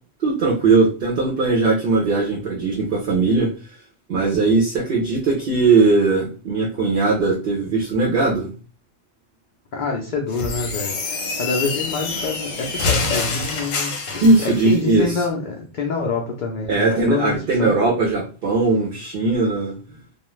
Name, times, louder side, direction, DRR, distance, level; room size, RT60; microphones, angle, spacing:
voice 1, 0.2-3.5 4.1-8.5 14.2-15.2 16.7-19.7, right 3 dB, 55° right, -1 dB, 0.7 m, -19 dB
voice 2, 9.7-14.2 14.6-17.7, left 4 dB, 60° left, 0 dB, 0.5 m, -26 dB
sound 1, 10.3-14.7, left 4 dB, 80° left, 1.0 m, -26 dB
2.4 x 2.3 x 3.0 m, 0.36 s
omnidirectional pair, 1.3 m